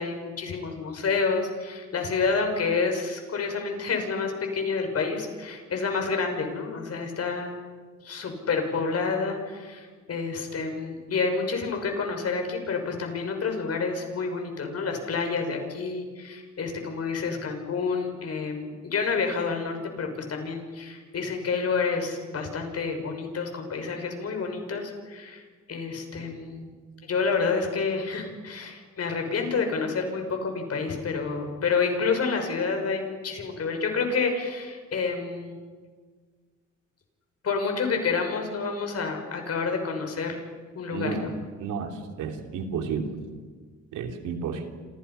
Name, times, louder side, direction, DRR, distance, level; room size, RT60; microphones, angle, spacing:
voice 1, 0.0-7.6 8.0-25.4 25.7-26.7 27.0-35.6 37.4-40.4 40.7-41.3, left 4 dB, 55° left, 4 dB, 6.0 m, -29 dB
voice 2, 40.9-41.3 41.6-43.0 43.9-44.6, right 6 dB, 85° right, 4 dB, 3.2 m, -31 dB
28.5 x 27.5 x 5.7 m, 1.5 s
cardioid pair, 90°, 30 cm